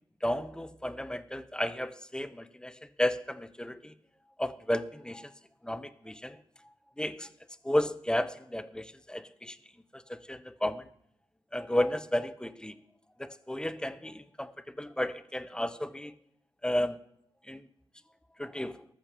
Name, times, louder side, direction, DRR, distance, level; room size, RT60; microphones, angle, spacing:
voice 1, 0.2-3.9 4.4-5.3 5.6-6.4 7.0-7.3 7.6-9.6 9.9-10.9 11.5-12.7 13.2-14.5 14.8-16.1 16.6-17.0 17.5-17.6 18.4-18.8, left 1 dB, 5° left, 14 dB, 0.7 m, -33 dB
13.5 x 6.0 x 6.9 m, 0.72 s
cardioid pair, 70°, 11 cm